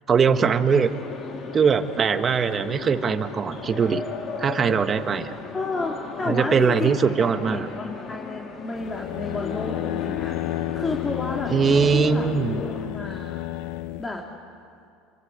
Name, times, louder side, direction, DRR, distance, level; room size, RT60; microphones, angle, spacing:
voice 1, 0.1-0.9 1.5-4.0 4.4-5.4 6.2-7.7 11.5-12.6, right 6 dB, 30° right, 8 dB, 1.5 m, -21 dB
sound 1, 0.7-12.9, left 4 dB, 40° left, 3.6 m, -36 dB
voice 2, 5.5-12.3 12.6-13.4 14.0-14.2, left 3 dB, 20° left, 0 dB, 2.9 m, -31 dB
sound 2, 8.8-14.1, left 16 dB, 75° left, 0.9 m, -31 dB
27.5 x 24.0 x 8.3 m, 2.4 s
supercardioid pair, 105°, 0 cm